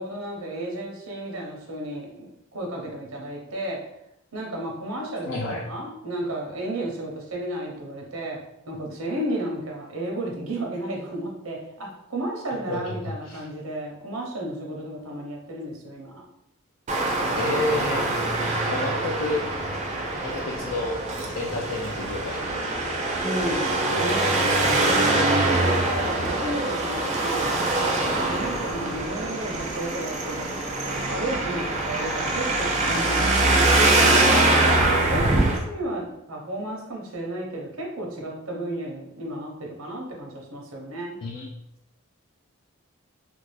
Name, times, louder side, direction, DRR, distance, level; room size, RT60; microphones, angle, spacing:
voice 1, 0.0-2.3 2.5-3.9 4.3-16.2 23.2-24.4 24.7-30.5 31.1-34.6 34.9-41.2, right 1 dB, 85° right, -1 dB, 0.8 m, -33 dB
voice 2, 5.3-5.6 12.7-13.5 17.1-18.1 18.7-19.4 20.2-21.0 21.4-22.5 23.9-24.9 41.2-41.5, left 2 dB, 65° left, -2 dB, 0.4 m, -30 dB
Traffic noise roadway noise, 16.9-35.6, right 2 dB, 35° right, 0.5 m, -23 dB
2.6 x 2.5 x 3.1 m, 0.82 s
head